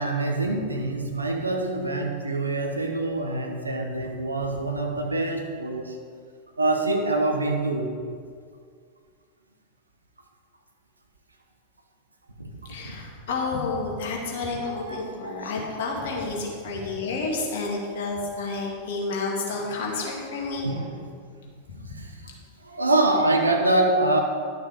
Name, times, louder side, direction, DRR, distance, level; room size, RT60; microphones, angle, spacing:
voice 1, 0.0-6.0 6.6-7.9 12.4-12.5 12.8-13.0 14.5-15.7 20.6-21.1 21.8-22.3 22.6-24.2, right 2 dB, 80° right, 2 dB, 1.1 m, -25 dB
voice 2, 12.7-20.7, left 3 dB, 55° left, -2 dB, 2.1 m, -30 dB
11.5 x 6.4 x 5.0 m, 2.1 s
figure-of-eight pair, 90°, 0 cm